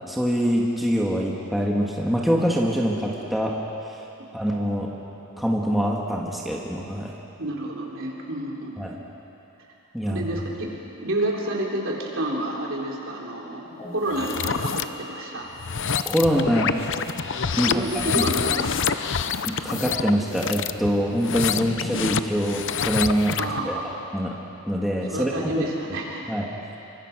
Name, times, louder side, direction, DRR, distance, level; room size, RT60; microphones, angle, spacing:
voice 1, 0.1-4.0 4.3-4.9 5.4-7.1 8.8-8.9 9.9-10.2 16.0-16.7 17.6-17.8 18.1-18.2 19.5-23.4 23.6-23.8 24.1-24.3 24.7-25.7 26.3-26.5, equal, ahead, -3 dB, 1.8 m, -24 dB
voice 2, 7.4-8.7 10.0-10.7 11.0-15.5 16.2-16.3 17.6-18.8 23.4-24.0 25.0-26.3, right 1 dB, 60° right, -2 dB, 4.3 m, -29 dB
sound 1, 13.8-21.3, left 1 dB, 25° left, 6.2 m, -45 dB
sound 2, 14.1-14.8 15.5-23.6, left 6 dB, 55° left, 0.7 m, -27 dB
28.0 x 24.5 x 6.3 m, 3.0 s
head